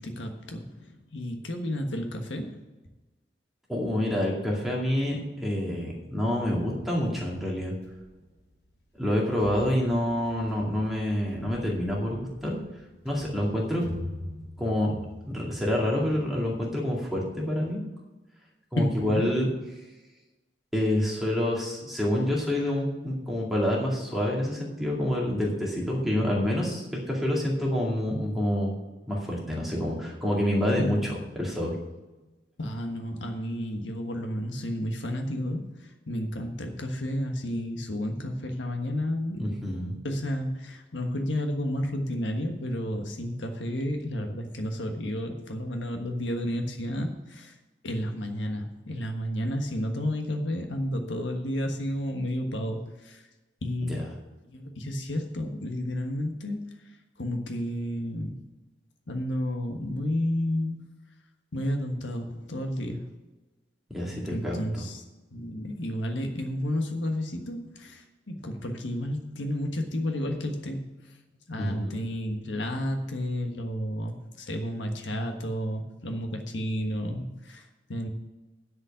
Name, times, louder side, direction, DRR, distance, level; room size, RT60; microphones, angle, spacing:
voice 1, 0.0-2.6 18.8-19.3 30.8-31.1 32.6-39.5 40.0-47.5 47.8-53.2 53.6-54.0 54.5-56.7 57.2-58.4 59.1-60.9 61.5-63.1 64.3-65.0 65.3-71.0 71.5-78.1, equal, 85° left, 4 dB, 1.4 m, -31 dB
voice 2, 3.7-7.7 9.0-12.6 13.0-13.9 14.6-14.9 15.3-17.8 18.7-19.5 20.7-28.8 29.1-31.8 39.4-40.0 53.8-54.1 63.9-64.6 71.6-72.0, left 1 dB, ahead, -4 dB, 2.3 m, -27 dB
sound 1, 6.4-17.7, left 1 dB, 60° left, 2.8 m, -45 dB
10.0 x 5.4 x 8.3 m, 1.1 s
head